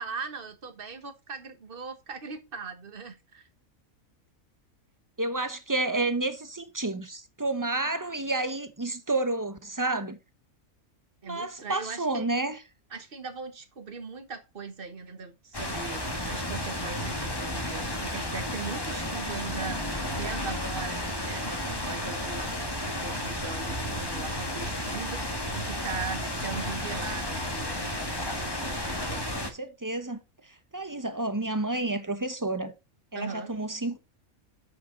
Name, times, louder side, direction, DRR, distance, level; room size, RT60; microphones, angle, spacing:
voice 1, 0.0-3.5 11.2-12.4 12.9-22.5 23.0-27.9 28.6-29.5 33.1-33.5, right 5 dB, 40° right, 1.5 m, -39 dB
voice 2, 5.2-10.2 11.2-12.6 29.4-30.2 30.7-32.7 33.1-34.0, right 2 dB, 15° right, 0.7 m, -30 dB
sound 1, 15.5-29.5, left 1 dB, 15° left, 1.4 m, -32 dB
8.0 x 6.4 x 3.9 m
omnidirectional pair, 1.5 m